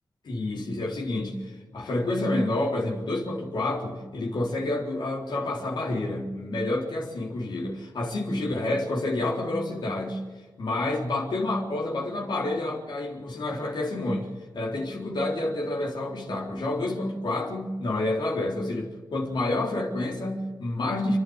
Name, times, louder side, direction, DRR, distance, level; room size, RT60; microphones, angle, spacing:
voice 1, 0.2-10.2 10.6-14.3 14.5-21.2, left 2 dB, 85° left, -2 dB, 4.0 m, -29 dB
29.0 x 12.0 x 8.0 m, 1.4 s
wide cardioid pair, 140°, 8 cm